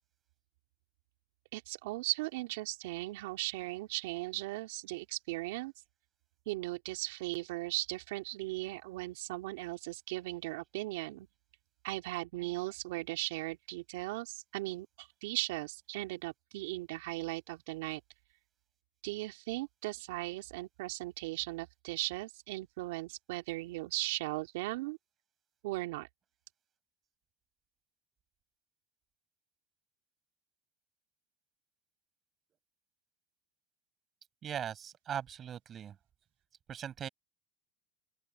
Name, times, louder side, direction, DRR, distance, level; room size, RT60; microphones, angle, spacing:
voice 1, 1.5-5.7 6.5-11.3 11.8-18.0 19.0-25.0 25.6-26.1, right 20 dB, 75° right, 2.9 m, -38 dB
voice 2, 34.4-36.0 36.7-37.1, right 9 dB, 35° right, 6.3 m, -39 dB
open air
hypercardioid pair, 100°, 0 cm